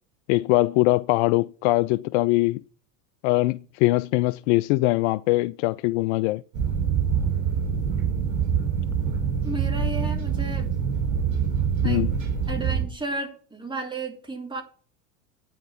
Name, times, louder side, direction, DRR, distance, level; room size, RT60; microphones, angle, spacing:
voice 1, 0.3-2.6 3.2-6.4 11.8-12.1, left 19 dB, 55° left, 0.5 m, -22 dB
sound 1, 6.5-12.8, right 7 dB, 45° right, 6.0 m, -25 dB
voice 2, 9.4-10.7 11.8-12.1 12.5-14.6, right 2 dB, 10° right, 3.4 m, -33 dB
9.2 x 6.0 x 8.5 m
hypercardioid pair, 100°, 42 cm